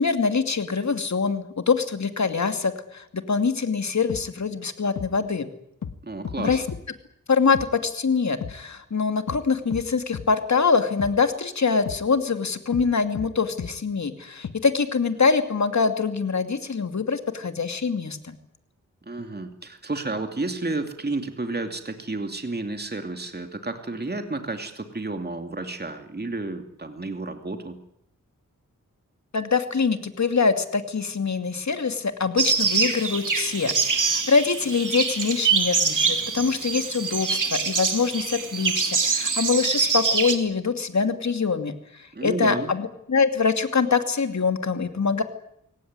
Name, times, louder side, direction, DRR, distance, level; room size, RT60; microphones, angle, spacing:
voice 1, 0.0-5.5 6.4-6.6 7.3-18.4 29.3-45.2, left 5 dB, 60° left, 8 dB, 2.7 m, -24 dB
sound 1, 4.1-4.2 5.0-5.1 5.8-6.0 6.2-6.8 7.5-7.7 8.4-8.5 9.3-9.4 9.7-9.8 10.1-10.3 11.0-11.1 11.9-12.0 12.7-12.9 13.2-13.3 13.6-13.7 14.4-14.5, left 7 dB, 80° left, 1.5 m, -32 dB
voice 2, 6.0-6.6 19.0-27.8 42.1-42.7, right 2 dB, 30° right, 6 dB, 2.6 m, -31 dB
sound 2, 32.4-40.4, right 5 dB, 75° right, 3.1 m, -24 dB
23.5 x 18.0 x 9.7 m, 0.77 s
cardioid pair, 65°, 31 cm